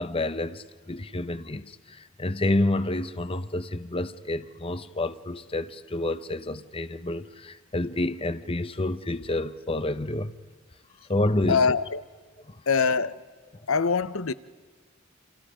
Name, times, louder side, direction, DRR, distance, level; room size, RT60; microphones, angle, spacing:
voice 1, 0.0-10.3 11.1-11.6 12.5-12.6, left 2 dB, 25° left, 0.9 m, -29 dB
voice 2, 11.5-12.0 12.7-13.2 13.7-14.3, left 5 dB, 85° left, 0.9 m, -23 dB
29.5 x 28.0 x 5.0 m
head